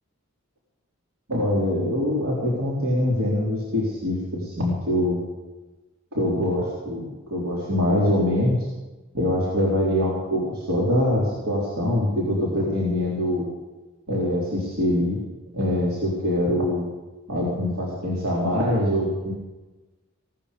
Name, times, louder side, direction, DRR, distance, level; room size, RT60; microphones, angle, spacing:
voice 1, 1.3-5.2 6.1-8.6 9.1-13.4 14.1-15.2 15.5-16.9 17.3-19.3, left 1 dB, 75° right, -6 dB, 3.8 m, -24 dB
18.0 x 13.0 x 5.2 m, 1.1 s
head